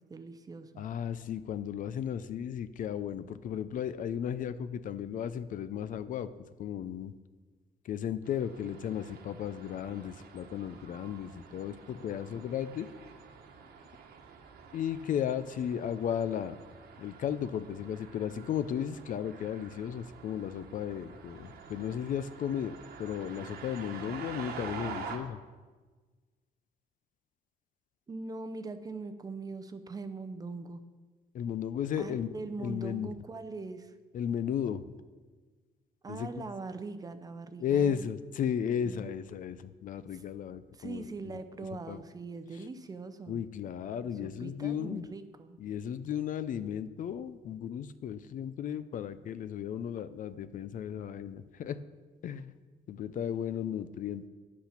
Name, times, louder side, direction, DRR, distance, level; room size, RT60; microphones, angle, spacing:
voice 1, 0.1-0.8 28.1-30.8 32.0-33.9 36.0-38.1 38.8-39.1 40.1-40.2 40.7-43.4 44.0-45.6, right 3 dB, 20° right, 10 dB, 0.6 m, -41 dB
voice 2, 0.8-6.3 6.6-7.1 7.8-12.9 14.7-16.6 17.0-25.4 31.3-33.2 34.1-34.9 36.1-36.5 37.6-41.4 41.9-42.0 43.3-45.1 45.6-51.8 52.2-52.5 52.9-54.3, left 9 dB, 55° left, 13 dB, 0.5 m, -35 dB
sound 1, 8.3-25.2, right 6 dB, 75° right, 1.3 m, -48 dB
10.5 x 8.4 x 5.8 m, 1.4 s
cardioid pair, 165°, 17 cm